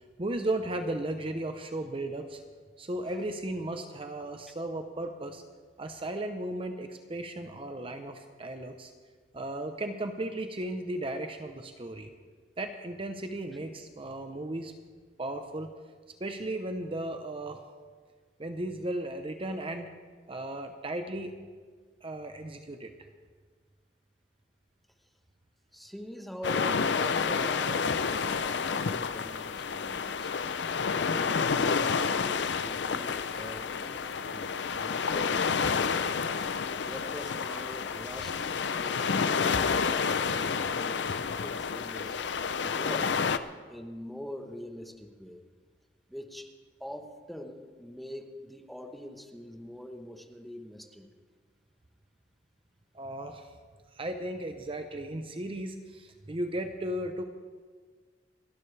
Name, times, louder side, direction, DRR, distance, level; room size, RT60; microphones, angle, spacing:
voice 1, 0.2-2.4 2.8-5.4 5.8-8.9 9.3-12.1 12.6-14.7 15.2-15.7 16.2-17.6 18.4-19.9 20.3-21.3 22.0-22.9 52.9-53.4 54.0-57.2, right 1 dB, 30° right, 6 dB, 0.8 m, -35 dB
voice 2, 25.7-30.3 30.9-35.9 36.8-42.2 42.6-43.2 43.7-45.4 46.1-46.5 46.8-51.1, equal, ahead, 4 dB, 1.1 m, -44 dB
sound 1, 26.4-43.4, left 5 dB, 80° left, 0.6 m, -29 dB
29.5 x 11.5 x 3.4 m, 1.5 s
head